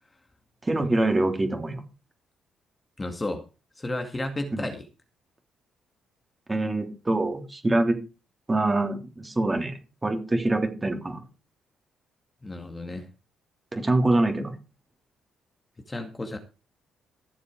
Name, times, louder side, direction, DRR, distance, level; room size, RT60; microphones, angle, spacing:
voice 1, 0.6-1.8 4.5-4.7 6.5-8.0 8.5-11.2 13.7-14.6, right 2 dB, 20° right, 4 dB, 3.2 m, -25 dB
voice 2, 3.0-3.4 3.8-4.9 12.4-13.1 15.9-16.4, left 1 dB, 20° left, 5 dB, 2.1 m, -32 dB
16.0 x 7.1 x 4.8 m, 0.31 s
cardioid pair, 90°, 0 cm